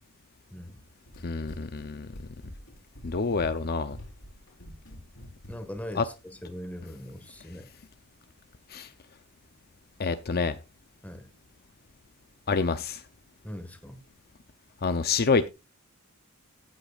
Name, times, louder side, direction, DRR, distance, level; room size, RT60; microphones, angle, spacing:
Run, 0.7-5.9, equal, 65° left, 3.5 m, -47 dB
voice 1, 1.2-2.1 3.0-4.0 5.9-6.0 8.7-8.9 10.0-10.6 12.5-13.0 14.8-15.5, left 4 dB, 45° left, 0.7 m, -27 dB
voice 2, 5.5-7.7 11.0-11.3 13.4-14.0, equal, 5° left, 1.6 m, -40 dB
15.0 x 8.3 x 2.4 m
head